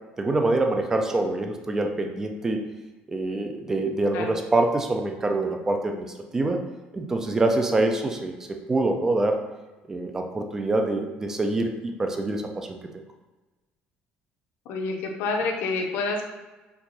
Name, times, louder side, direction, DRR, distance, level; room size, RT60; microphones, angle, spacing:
voice 1, 0.2-2.6 3.1-6.1 6.3-6.6 6.9-8.3 8.7-9.4 9.9-12.8, right 2 dB, 15° right, 3 dB, 0.5 m, -25 dB
voice 2, 14.7-16.3, left 3 dB, 75° left, 2 dB, 0.8 m, -28 dB
4.5 x 2.6 x 4.1 m, 1.2 s
cardioid pair, 155°, 4 cm